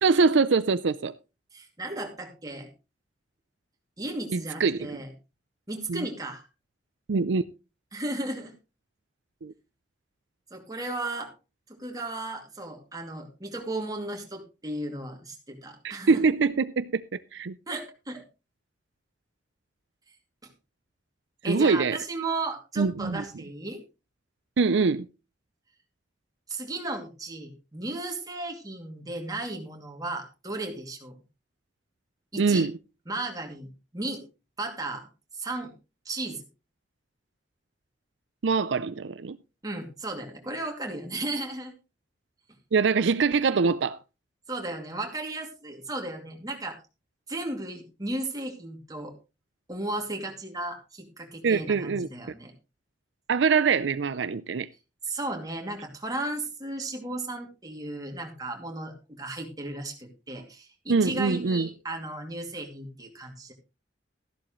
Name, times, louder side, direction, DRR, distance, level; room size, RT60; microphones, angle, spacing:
voice 1, 0.0-1.1 4.3-5.0 5.9-6.1 7.1-7.4 9.4-9.5 15.8-17.0 17.3-17.5 21.5-22.0 22.8-23.2 24.6-25.1 32.4-32.7 38.4-39.4 42.7-44.0 51.4-52.1 53.3-54.7 60.9-61.7, right 4 dB, 75° right, 0.5 m, -24 dB
voice 2, 1.5-2.7 4.0-5.1 5.7-6.4 7.9-8.5 10.5-11.3 11.7-16.2 17.7-18.3 20.4-20.5 21.4-23.8 26.5-31.1 32.3-32.7 33.1-33.7 33.9-34.2 34.6-35.1 35.4-35.7 36.0-36.4 39.6-41.7 44.5-46.8 47.3-49.1 49.7-52.5 55.1-63.5, right 2 dB, 20° right, 2.5 m, -35 dB
14.0 x 11.5 x 3.1 m
head